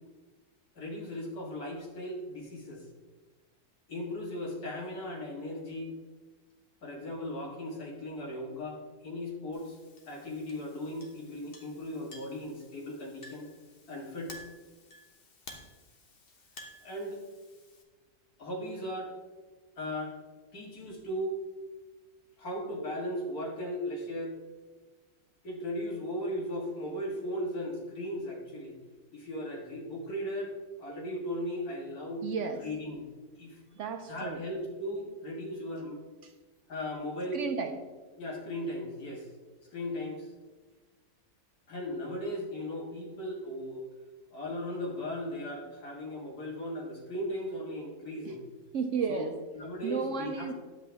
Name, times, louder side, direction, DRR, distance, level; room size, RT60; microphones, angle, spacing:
voice 1, 0.8-2.8 3.9-5.9 6.8-9.8 10.1-13.5 13.9-14.4 16.8-17.2 18.4-19.1 19.8-20.2 20.5-21.4 22.4-24.3 25.4-28.7 29.1-32.3 32.5-33.1 33.4-33.6 34.1-36.0 36.7-37.4 38.2-39.3 39.7-40.3 41.7-43.9 44.3-48.4 49.1-50.5, left 1 dB, 75° left, -1 dB, 2.3 m, -37 dB
Chink clink, 9.5-17.8, left 1 dB, 40° left, 1.2 m, -53 dB
voice 2, 32.2-32.6 33.8-34.4 36.2-36.3 37.3-37.8 48.3-48.4 48.7-49.3 49.8-50.5, right 5 dB, 60° right, 6 dB, 0.9 m, -33 dB
10.0 x 7.7 x 3.4 m, 1.3 s
omnidirectional pair, 1.6 m